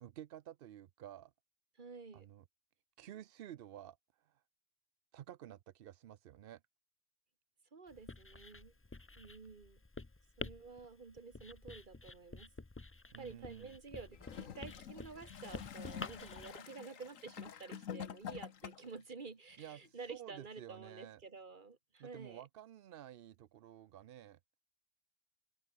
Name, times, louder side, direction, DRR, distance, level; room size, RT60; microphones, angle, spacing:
voice 1, 0.0-1.3 2.1-2.4 3.0-4.4 5.1-6.6 13.1-13.8 19.6-21.2 22.0-24.4, right 11 dB, 60° right, 0.6 m, -52 dB
voice 2, 1.8-2.3 7.7-8.7 9.2-9.8 10.4-12.5 13.2-22.4, right 4 dB, 40° right, 1.8 m, -51 dB
Writing, 7.9-16.5, left 2 dB, 20° left, 0.3 m, -50 dB
Gurgling / Toilet flush, 14.1-19.0 19.8-19.9, left 8 dB, 80° left, 1.5 m, -47 dB
open air
omnidirectional pair, 1.4 m